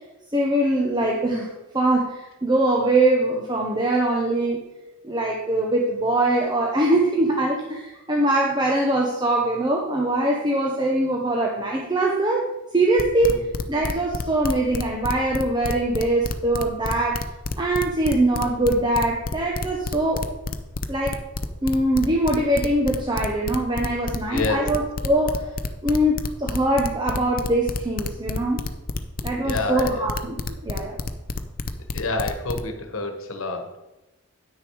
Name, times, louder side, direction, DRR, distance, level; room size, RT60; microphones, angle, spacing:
voice 1, 0.3-4.6 5.0-12.5 12.7-17.2 17.6-20.3 20.9-21.2 21.6-25.5 25.8-28.6 29.2-31.0, right 1 dB, 20° right, -1 dB, 0.9 m, -22 dB
sound 1, 13.0-32.6, left 3 dB, 40° left, 0.6 m, -29 dB
voice 2, 24.3-24.7 29.4-30.1 31.9-33.8, left 3 dB, 70° left, 5 dB, 1.3 m, -28 dB
9.7 x 6.5 x 4.7 m, 1.0 s
head